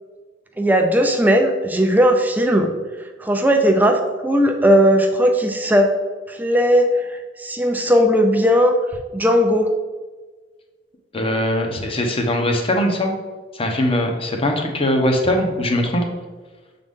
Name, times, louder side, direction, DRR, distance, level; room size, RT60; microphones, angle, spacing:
voice 1, 0.6-2.7 3.2-5.9 6.3-8.8 9.1-9.7, equal, 10° right, 4 dB, 0.4 m, -17 dB
voice 2, 11.1-13.1 13.5-16.1, left 1 dB, 30° left, 2 dB, 0.8 m, -21 dB
7.1 x 3.9 x 3.6 m, 1.3 s
head